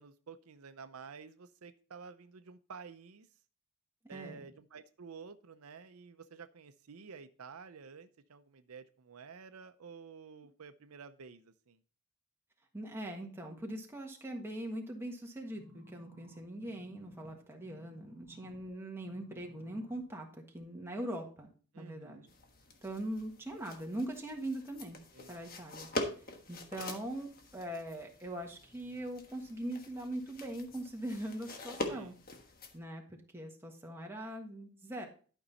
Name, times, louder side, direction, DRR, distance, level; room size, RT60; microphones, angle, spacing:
voice 1, 0.0-3.3 4.1-11.8 21.7-22.3 25.1-25.4 31.8-32.2, right 5 dB, 80° right, 11 dB, 0.6 m, -51 dB
voice 2, 4.0-4.5 12.7-22.3 22.8-25.0 25.3-25.9 26.1-32.1 32.7-35.1, right 1 dB, 10° right, 1 dB, 1.5 m, -41 dB
sound 1, 15.5-18.7 19.0-20.0 20.6-20.7, equal, 75° left, 2.6 m, -57 dB
sound 2, 22.3-32.8, left 2 dB, 40° left, 1.3 m, -44 dB
11.5 x 5.4 x 4.1 m, 0.40 s
head